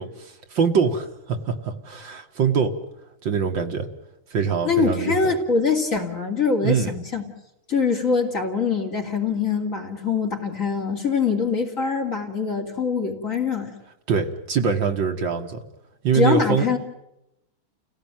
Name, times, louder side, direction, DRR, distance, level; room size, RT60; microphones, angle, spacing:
voice 1, 0.0-2.7 3.2-3.9 4.3-5.2 6.6-6.9 14.1-15.6 16.0-16.7, right 6 dB, 60° right, 5 dB, 2.3 m, -23 dB
voice 2, 4.6-7.2 7.7-13.7 16.1-16.8, left 5 dB, 35° left, 2 dB, 3.2 m, -23 dB
29.5 x 17.0 x 9.2 m, 0.88 s
omnidirectional pair, 2.4 m